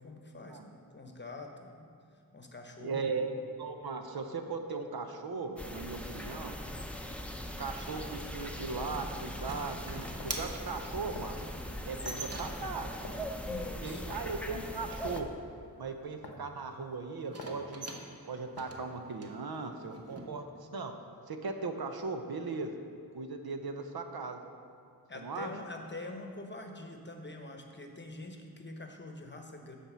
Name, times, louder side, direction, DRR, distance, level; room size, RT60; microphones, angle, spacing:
voice 1, 0.0-1.9 2.3-3.3 13.4-14.1 25.1-29.8, left 2 dB, 30° left, 3 dB, 0.9 m, -45 dB
voice 2, 2.8-6.6 7.6-11.4 11.9-13.1 13.8-15.3 15.8-17.9 18.3-20.9 21.3-22.8 23.1-24.4 25.1-25.5, right 4 dB, 70° right, 6 dB, 0.7 m, -38 dB
sound 1, 5.6-15.2, left 1 dB, 5° left, 0.6 m, -40 dB
sound 2, 7.9-12.8 17.2-20.3, right 2 dB, 40° right, 1.0 m, -44 dB
sound 3, 10.2-10.4 11.1-11.4 12.1-12.3 13.0-13.3 14.1-14.4 15.2-15.4 16.2-16.5 17.4-17.6 18.6-18.9, left 3 dB, 85° left, 0.8 m, -47 dB
8.7 x 4.3 x 6.1 m, 2.5 s
wide cardioid pair, 55°, 38 cm